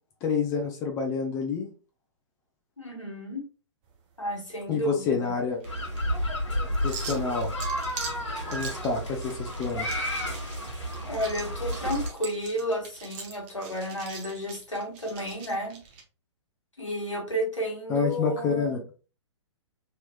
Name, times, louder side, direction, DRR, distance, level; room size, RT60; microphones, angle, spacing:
voice 1, 0.2-1.7 4.7-5.6 6.8-7.5 8.5-10.0 17.9-18.8, left 5 dB, 20° left, 2 dB, 0.6 m, -28 dB
voice 2, 2.8-3.4 4.2-5.3 11.0-15.8 16.8-18.8, equal, 85° left, 0 dB, 1.4 m, -32 dB
sound 1, 3.8-16.0, right 6 dB, 30° right, 0.7 m, -44 dB
sound 2, 5.6-12.1, equal, 70° left, 1.3 m, -31 dB
3.2 x 3.0 x 2.2 m, 0.34 s
figure-of-eight pair, 115°, 16 cm